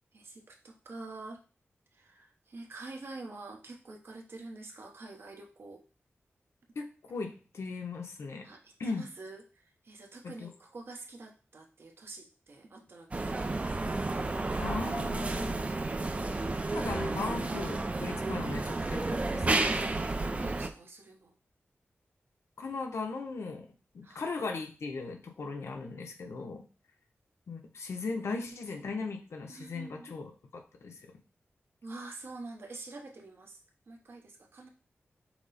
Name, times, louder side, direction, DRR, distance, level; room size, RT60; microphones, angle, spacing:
voice 1, 0.1-1.4 1.9-5.8 8.4-13.7 19.9-21.3 24.0-24.3 29.5-30.1 31.8-33.6 33.9-34.7, right 3 dB, 65° right, 3 dB, 0.9 m, -47 dB
voice 2, 6.8-8.5 8.8-9.0 10.2-10.5 14.6-15.6 16.7-19.7 22.6-23.7 23.9-26.6 27.5-31.0, left 4 dB, 85° left, 3 dB, 0.7 m, -38 dB
Tram stop - piccadilly, 13.1-20.7, right 2 dB, 30° right, 0.4 m, -31 dB
5.9 x 2.1 x 4.0 m, 0.37 s
wide cardioid pair, 120°, 4 cm